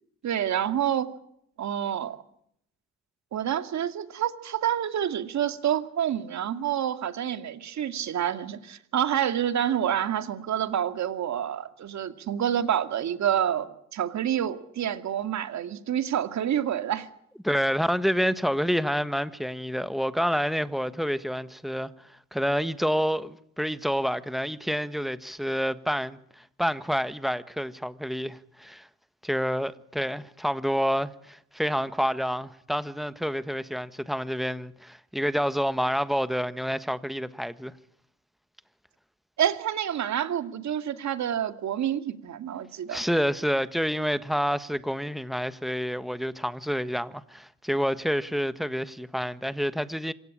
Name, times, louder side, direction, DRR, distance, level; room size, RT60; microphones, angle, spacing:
voice 1, 0.2-1.1 1.6-2.2 3.3-17.1 39.4-43.0, right 10 dB, 65° right, 2.4 m, -28 dB
voice 2, 17.4-28.9 29.2-37.7 42.9-50.1, equal, ahead, 1.4 m, -28 dB
26.5 x 16.5 x 8.8 m
cardioid pair, 90°, 30 cm